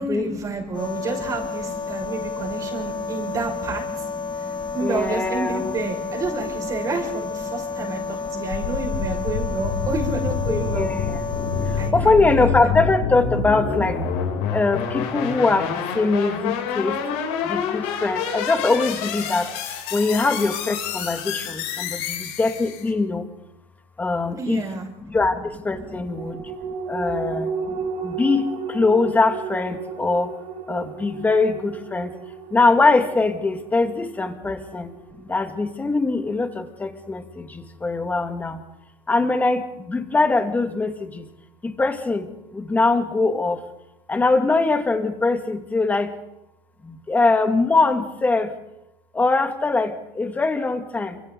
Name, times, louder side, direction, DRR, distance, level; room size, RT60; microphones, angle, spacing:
voice 1, 0.0-4.0 4.4-4.5 4.7-10.9 11.8-12.7 24.4-24.9, right 3 dB, 25° right, 2 dB, 6.2 m, -29 dB
sound 1, 0.7-11.9, left 5 dB, 35° left, 2.2 m, -31 dB
voice 2, 4.3-5.7 7.6-7.9 8.2-8.9 10.5-14.0 14.5-17.0 17.4-19.5 19.9-23.3 24.0-24.6 25.1-26.5 26.9-30.3 30.7-32.1 32.5-34.9 35.3-38.6 39.1-41.3 41.6-42.3 42.5-43.6 44.1-46.1 46.8-48.5 49.1-51.2, left 3 dB, 10° left, 6 dB, 2.3 m, -22 dB
sound 2, 8.5-22.9, left 6 dB, 70° left, 7.6 m, -27 dB
sound 3, 25.7-36.5 36.9-37.0, right 5 dB, 70° right, 5.4 m, -34 dB
29.5 x 27.0 x 4.1 m, 0.87 s
cardioid pair, 150°, 13 cm